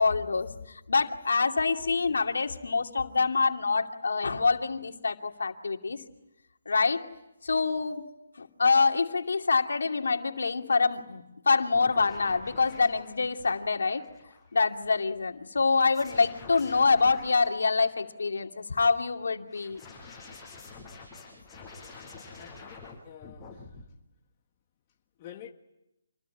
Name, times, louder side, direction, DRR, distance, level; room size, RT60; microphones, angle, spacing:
voice 1, 0.0-6.0 6.7-7.0 7.4-8.1 8.4-14.1 14.5-19.8, left 4 dB, 80° left, 2.6 m, -26 dB
sound 1, 11.7-14.5 15.7-18.1 19.5-23.0 23.2-23.9, left 4 dB, 5° left, 8.0 m, -48 dB
voice 2, 22.4-23.6 25.2-25.5, left 10 dB, 25° left, 1.6 m, -48 dB
27.5 x 21.5 x 9.8 m
hypercardioid pair, 165°, 0 cm